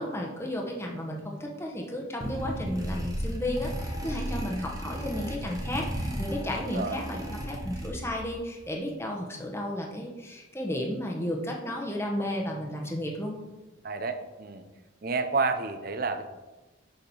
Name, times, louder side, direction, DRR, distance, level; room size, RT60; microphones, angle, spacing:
voice 1, 0.0-13.4, left 1 dB, 15° left, 0 dB, 1.0 m, -33 dB
sound 1, 2.2-8.3, equal, 20° right, 1.0 m, -34 dB
voice 2, 6.6-7.0 13.8-14.6 15.0-16.2, right 4 dB, 50° right, 8 dB, 0.7 m, -30 dB
7.1 x 4.9 x 5.5 m, 1.1 s
head